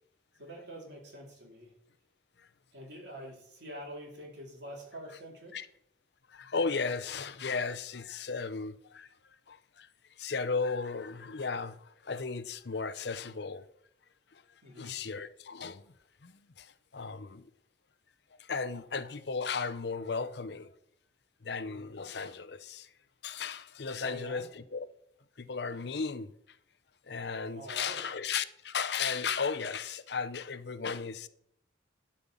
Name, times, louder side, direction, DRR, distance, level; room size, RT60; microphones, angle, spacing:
voice 1, 0.4-1.7 2.7-5.6 14.6-15.0 24.0-24.4 27.5-28.1, right 1 dB, 65° right, 3.8 m, -46 dB
voice 2, 6.3-9.1 9.5-9.9 10.2-13.7 14.3-14.4 14.8-15.8 16.2-17.5 18.4-20.7 21.4-22.9 23.2-24.9 25.4-26.3 27.1-31.3, left 5 dB, 60° left, 0.6 m, -35 dB
12.0 x 5.5 x 7.1 m
head